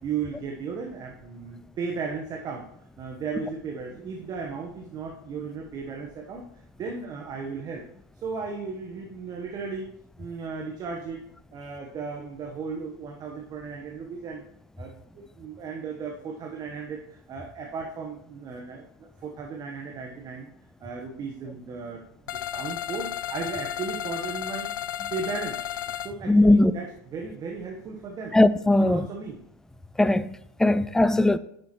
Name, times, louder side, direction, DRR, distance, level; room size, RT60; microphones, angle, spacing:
voice 1, 0.0-2.7 3.0-6.5 6.8-7.8 8.1-9.9 10.2-11.2 11.5-14.4 14.8-20.5 20.8-24.7 25.1-25.6 26.0-28.4 28.8-29.4, right 5 dB, 40° right, 1.1 m, -35 dB
sound 1, 22.3-26.1, left 11 dB, 85° left, 0.4 m, -33 dB
voice 2, 26.3-26.7 28.3-29.1 30.0-30.3 30.6-31.4, left 2 dB, 5° left, 0.4 m, -19 dB
9.9 x 6.7 x 3.1 m
hypercardioid pair, 95°, 11 cm